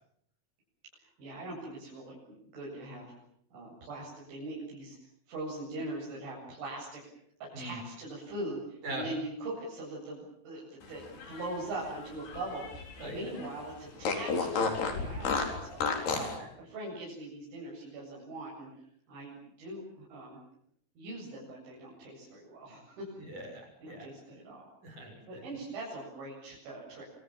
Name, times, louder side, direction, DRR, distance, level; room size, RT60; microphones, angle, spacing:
voice 1, 1.2-3.2 3.5-5.0 5.3-7.0 7.4-16.3 16.6-18.7 19.1-20.4 21.0-23.1 23.8-24.7 25.2-27.1, right 2 dB, 70° right, -4 dB, 10.5 m, -41 dB
Fart, 11.0-13.1 13.4-13.5 14.0-16.4, left 4 dB, 55° left, 6.1 m, -32 dB
voice 2, 13.0-13.3 16.1-16.2 23.2-24.1 24.8-25.4, right 1 dB, 40° right, 3 dB, 8.1 m, -42 dB
27.5 x 26.5 x 7.5 m, 0.71 s
omnidirectional pair, 5.6 m